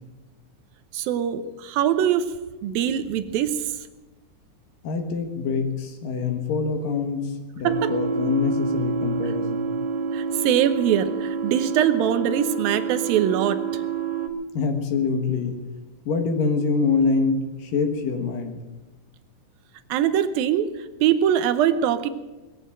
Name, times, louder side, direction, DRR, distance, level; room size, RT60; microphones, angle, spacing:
voice 1, 0.9-2.4 2.6-3.7 7.6-7.9 10.1-13.8 19.9-22.1, right 9 dB, 85° right, 10 dB, 2.7 m, -23 dB
voice 2, 4.8-9.8 14.5-15.6 16.1-18.6, left 5 dB, 75° left, 5 dB, 3.1 m, -25 dB
sound 1, 7.7-14.3, right 5 dB, 55° right, 1.2 m, -28 dB
20.0 x 8.1 x 8.8 m, 1.1 s
omnidirectional pair, 4.1 m